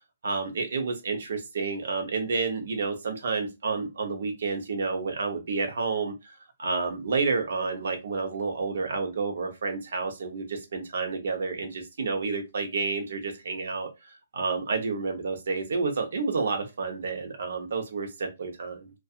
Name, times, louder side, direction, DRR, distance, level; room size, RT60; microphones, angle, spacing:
voice 1, 0.2-13.9 14.3-18.9, right 4 dB, 65° right, 0.8 m, -30 dB
2.6 x 2.4 x 2.4 m
hypercardioid pair, 170°, 0 cm